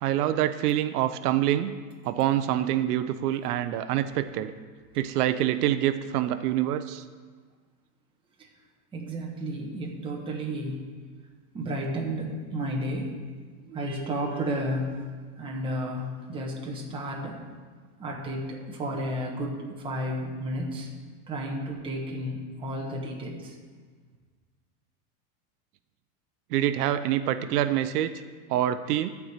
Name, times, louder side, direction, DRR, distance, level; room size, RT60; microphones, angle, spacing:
voice 1, 0.0-1.7 2.0-4.5 5.0-7.0 26.5-28.1 28.5-29.1, right 12 dB, 80° right, 11 dB, 0.7 m, -26 dB
voice 2, 8.9-10.8 11.5-13.2 13.6-15.1 15.4-17.4 18.0-20.9 21.3-23.6, equal, 10° right, -2 dB, 1.2 m, -32 dB
11.5 x 4.8 x 8.1 m, 1.5 s
supercardioid pair, 170°, 46 cm